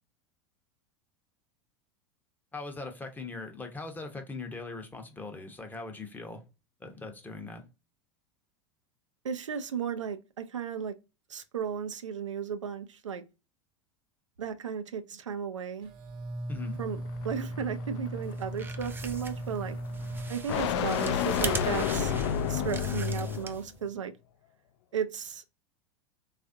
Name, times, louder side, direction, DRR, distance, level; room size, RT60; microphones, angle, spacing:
voice 1, 2.5-6.4 6.8-7.6 16.5-16.8, left 3 dB, 10° left, 0.7 m, -40 dB
voice 2, 9.2-11.0 11.3-13.2 14.4-15.9 16.8-19.8 20.3-22.1 22.5-24.1 24.9-25.4, right 7 dB, 85° right, 0.4 m, -35 dB
sound 1, 15.8-21.1, right 1 dB, 45° right, 0.8 m, -38 dB
sound 2, 16.6-23.7, left 8 dB, 60° left, 0.4 m, -32 dB
sound 3, 18.3-23.8, right 4 dB, 15° right, 0.4 m, -40 dB
3.3 x 2.4 x 2.5 m
figure-of-eight pair, 85°, 15 cm